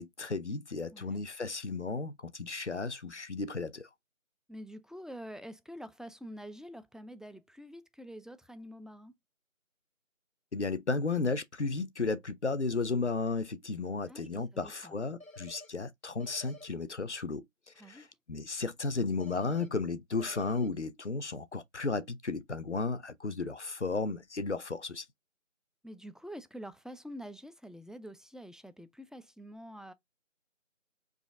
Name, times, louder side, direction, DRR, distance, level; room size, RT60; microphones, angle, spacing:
voice 1, 0.0-3.9 10.5-17.4 17.8-25.0, left 3 dB, 60° left, 0.7 m, -34 dB
voice 2, 4.5-9.1 14.1-14.9 17.8-18.1 25.8-29.9, equal, ahead, 0.3 m, -47 dB
sound 1, 15.2-15.7 16.2-16.7 19.2-19.7 20.2-20.7, left 1 dB, 85° left, 1.3 m, -51 dB
4.9 x 2.5 x 3.5 m
figure-of-eight pair, 175°, 40 cm